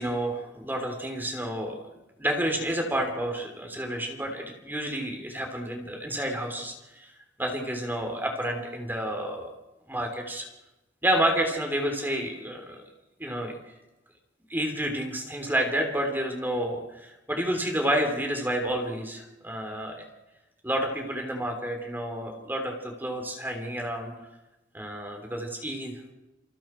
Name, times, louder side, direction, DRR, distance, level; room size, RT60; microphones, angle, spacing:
voice 1, 0.0-1.8 2.2-7.1 7.4-9.5 9.9-10.5 11.0-12.8 13.2-13.5 14.5-20.0 20.6-24.1 24.7-26.1, right 1 dB, 10° right, 3 dB, 3.3 m, -30 dB
28.0 x 27.0 x 4.5 m, 1.0 s
head